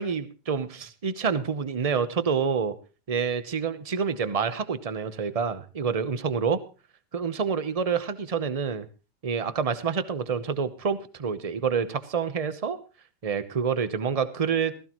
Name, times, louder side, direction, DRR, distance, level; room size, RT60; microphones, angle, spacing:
voice 1, 0.0-2.7 3.1-6.6 7.1-8.9 9.2-12.8 13.2-14.7, right 6 dB, 40° right, 12 dB, 0.5 m, -27 dB
16.0 x 15.0 x 3.0 m, 0.33 s
omnidirectional pair, 1.9 m